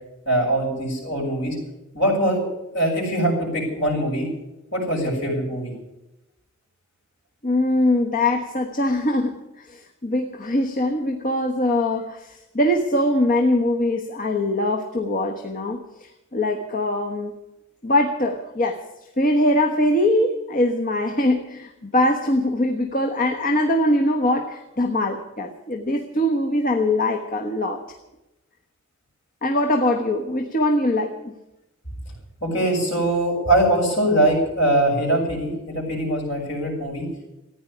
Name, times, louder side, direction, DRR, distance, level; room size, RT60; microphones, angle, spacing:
voice 1, 0.2-1.6 1.9-4.3 4.7-5.7 32.4-37.0, right 1 dB, 60° left, -2 dB, 6.7 m, -22 dB
voice 2, 7.4-17.3 17.8-18.8 19.2-27.8 29.4-31.4, left 1 dB, 40° left, 4 dB, 1.2 m, -22 dB
14.5 x 9.9 x 9.9 m, 0.94 s
head